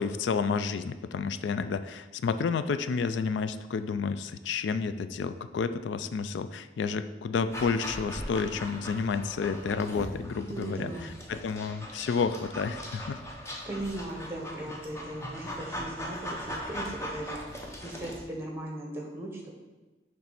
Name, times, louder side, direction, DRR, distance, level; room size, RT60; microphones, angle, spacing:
voice 1, 0.0-10.9 11.3-13.2, left 5 dB, 90° left, 12 dB, 0.3 m, -30 dB
Dog, 7.5-18.2, equal, 15° left, 0.8 m, -40 dB
voice 2, 10.5-11.1 13.7-19.5, right 1 dB, 15° right, 0 dB, 1.2 m, -38 dB
6.8 x 3.2 x 5.8 m, 1.1 s
head